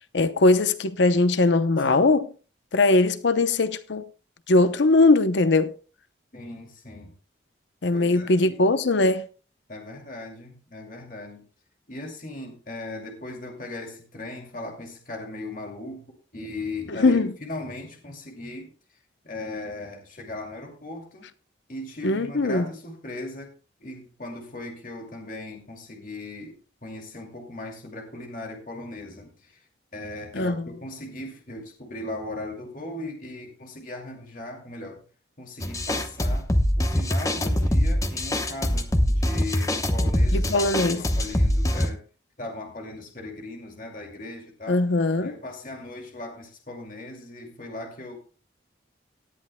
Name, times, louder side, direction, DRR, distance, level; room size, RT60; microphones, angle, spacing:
voice 1, 0.1-2.3 2.7-4.1 4.5-5.7 7.8-9.3 16.9-17.3 22.0-22.7 30.3-30.7 40.3-41.0 44.7-45.3, left 2 dB, 80° left, 0.8 m, -20 dB
voice 2, 6.3-7.1 7.9-8.6 9.7-11.4 11.9-16.1 16.3-18.7 19.2-21.3 21.7-23.5 23.8-26.6 26.8-29.6 29.9-35.0 35.4-36.5 36.8-42.0 42.4-44.8 45.2-48.2, left 2 dB, 45° left, 2.4 m, -38 dB
sound 1, 35.6-41.9, left 1 dB, 15° left, 0.9 m, -23 dB
18.0 x 11.0 x 2.2 m
head